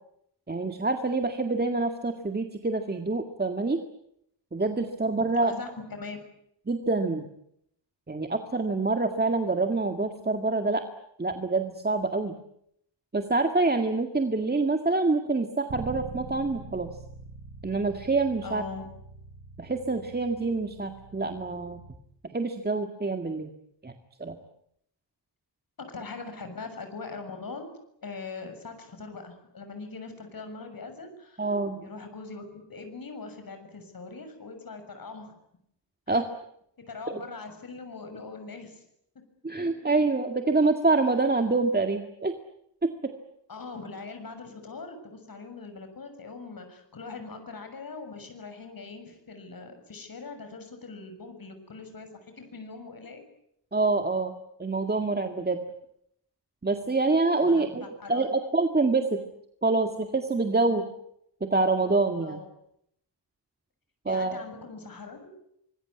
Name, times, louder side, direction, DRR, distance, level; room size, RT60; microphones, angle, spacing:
voice 1, 0.5-3.8 4.5-5.5 6.7-7.2 8.1-10.8 11.2-12.3 13.1-16.9 17.6-18.6 19.6-21.8 22.3-23.5 23.8-23.9 24.2-24.4 31.4-31.8 36.1-36.3 37.1-37.2 39.4-42.3 42.8-43.1 53.7-54.3 54.6-55.6 56.6-59.2 59.6-60.9 61.4-62.4 64.1-64.4, right 3 dB, 20° right, 5 dB, 2.0 m, -26 dB
voice 2, 5.4-6.2 18.4-18.9 25.9-27.7 28.0-31.5 31.8-35.3 36.1-36.2 36.8-38.8 43.5-52.1 52.4-53.2 57.4-58.3 62.2-62.5 64.1-65.3, left 4 dB, 55° left, 7 dB, 6.9 m, -41 dB
Bass guitar, 15.7-21.9, right 5 dB, 65° right, 5.5 m, -44 dB
25.5 x 21.0 x 9.7 m, 0.74 s
wide cardioid pair, 150°, 42 cm